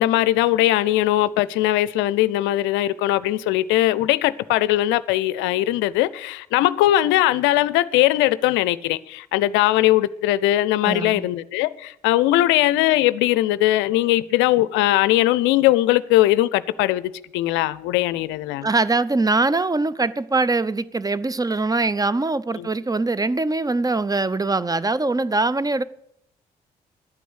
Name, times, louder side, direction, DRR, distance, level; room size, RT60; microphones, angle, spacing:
voice 1, 0.0-18.7 22.6-22.7, left 15 dB, 65° left, 0.5 m, -20 dB
voice 2, 10.8-11.3 18.6-25.8, right 3 dB, 20° right, 0.6 m, -22 dB
11.0 x 9.2 x 8.1 m
figure-of-eight pair, 40°, 20 cm